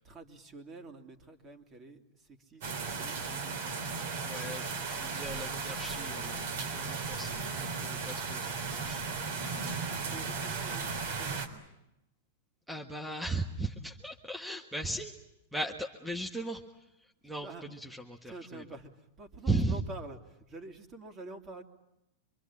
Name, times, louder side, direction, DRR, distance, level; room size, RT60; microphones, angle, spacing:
voice 1, 0.0-2.7 2.9-3.8 9.9-11.6 17.4-17.6 18.3-21.6, right 2 dB, 30° right, 5 dB, 3.0 m, -48 dB
sound 1, 2.6-11.5, right 4 dB, 65° right, 3.7 m, -36 dB
voice 2, 4.2-9.0 12.7-15.2 15.5-18.6 19.5-19.8, right 2 dB, 5° right, 2 dB, 1.6 m, -37 dB
26.0 x 22.5 x 8.7 m, 0.89 s
hypercardioid pair, 120°, 0 cm